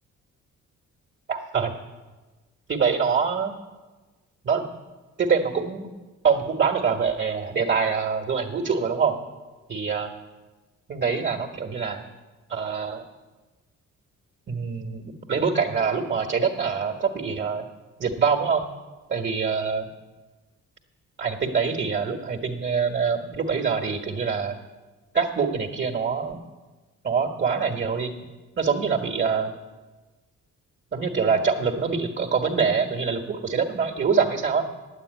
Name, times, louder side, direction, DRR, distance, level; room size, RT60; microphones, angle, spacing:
voice 1, 1.3-1.7 2.7-3.5 4.4-4.6 5.2-5.9 6.2-9.2 9.7-10.1 10.9-12.1 12.5-13.0 14.5-15.0 15.3-17.7 18.0-18.7 19.1-19.9 21.2-24.6 25.1-26.4 27.0-28.1 28.6-29.5 30.9-34.7, right 5 dB, 40° right, 2 dB, 1.4 m, -24 dB
9.2 x 8.7 x 9.2 m, 1.3 s
cardioid pair, 90°, 30 cm